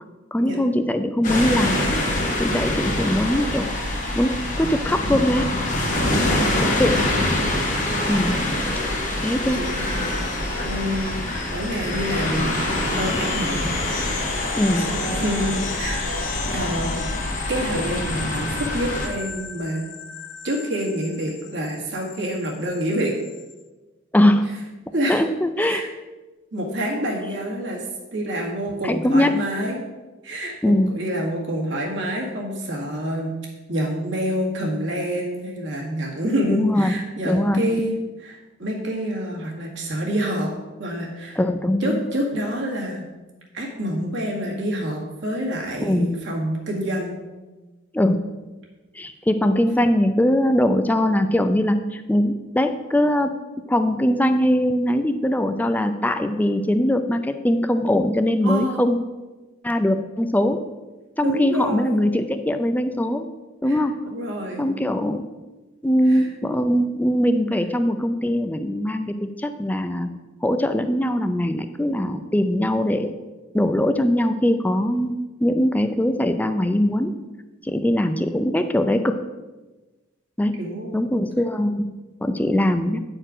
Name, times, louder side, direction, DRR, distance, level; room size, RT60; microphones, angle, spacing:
voice 1, 0.3-1.8 2.4-3.7 4.2-5.5 6.6-7.0 8.1-8.4 9.2-9.6 14.6-14.8 24.1-24.5 25.1-25.8 28.8-29.3 30.6-30.9 36.5-37.0 37.3-37.6 41.4-42.0 45.8-46.1 47.9-48.2 49.0-53.3 53.7-59.0 59.6-60.6 61.2-63.3 63.6-64.0 64.6-65.2 65.8-70.1 70.4-73.1 73.5-77.1 77.6-79.2 80.4-80.5 80.9-81.9 82.2-83.0, left 1 dB, 10° left, 8 dB, 0.4 m, -21 dB
sound 1, 1.2-19.1, left 1 dB, 40° left, 1.4 m, -25 dB
voice 2, 6.2-7.3 9.5-9.9 10.6-11.2 11.5-12.6 13.0-14.3 14.9-16.0 16.5-17.0 17.5-19.8 20.4-23.1 24.9-25.2 25.6-25.9 26.5-27.8 28.1-29.8 30.2-33.3 33.7-40.5 40.8-41.4 41.8-43.0 43.5-47.1 58.4-58.9 61.2-62.0 63.7-64.6 66.1-66.3 80.6-81.2, equal, 65° right, -2 dB, 1.9 m, -27 dB
sound 2, 7.7-23.5, left 5 dB, 70° left, 0.8 m, -36 dB
9.3 x 4.5 x 4.9 m, 1.2 s
head